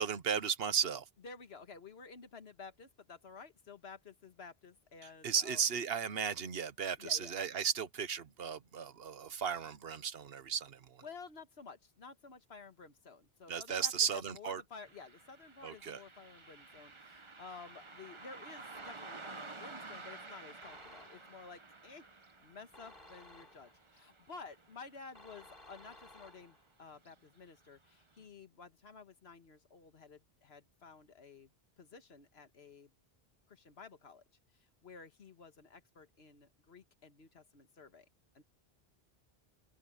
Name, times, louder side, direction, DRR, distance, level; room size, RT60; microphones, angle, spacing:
voice 1, 0.0-1.0 5.2-11.0 13.5-14.6 15.6-16.0, right 7 dB, 70° right, 1.1 m, -35 dB
voice 2, 1.2-5.6 7.0-7.4 11.0-22.1 22.4-31.5 31.8-32.9 33.5-34.2 34.5-38.1 38.3-38.4, left 4 dB, 90° left, 1.7 m, -53 dB
Car passing by, 14.8-25.6 25.9-26.0 27.0-27.1 27.6-27.7 28.2-28.3, right 3 dB, 30° right, 1.2 m, -52 dB
sound 1, 18.7-19.4 20.6-21.5 22.7-23.9 25.1-26.8, left 1 dB, 60° left, 4.0 m, -58 dB
open air
omnidirectional pair, 1.0 m